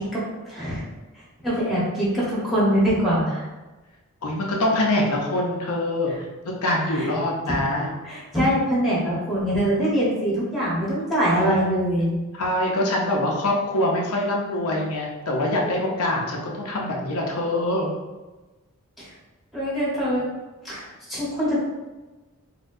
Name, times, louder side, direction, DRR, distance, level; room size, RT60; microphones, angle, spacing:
voice 1, 0.4-0.8 1.4-3.4 6.9-7.1 8.0-12.1 19.0-19.1 19.5-20.2 20.6-21.6, equal, ahead, -8 dB, 1.1 m, -23 dB
voice 2, 4.2-6.1 6.4-7.9 11.3-11.7 12.3-17.9, left 1 dB, 85° left, -1 dB, 0.6 m, -24 dB
4.2 x 2.2 x 2.6 m, 1.2 s
head